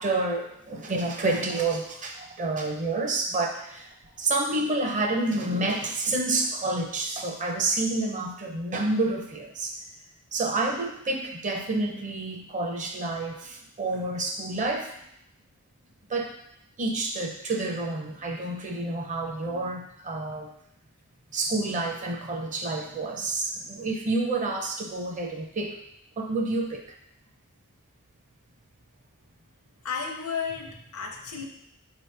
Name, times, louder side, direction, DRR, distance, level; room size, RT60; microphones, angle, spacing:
voice 1, 0.0-9.8 10.3-14.9 16.1-16.3 16.8-20.5 21.3-25.8 26.2-27.0, right 2 dB, 35° right, 2 dB, 0.6 m, -29 dB
voice 2, 29.8-31.4, left 6 dB, 70° left, 3 dB, 0.7 m, -33 dB
5.2 x 2.9 x 3.3 m, 0.76 s
head